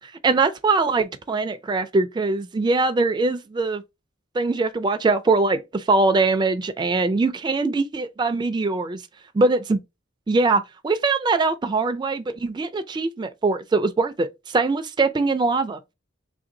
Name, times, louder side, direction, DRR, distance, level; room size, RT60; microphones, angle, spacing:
voice 1, 0.0-3.8 4.3-9.0 9.4-9.8 10.3-15.8, right 3 dB, 20° right, 0.3 m, -22 dB
3.2 x 2.6 x 3.7 m
head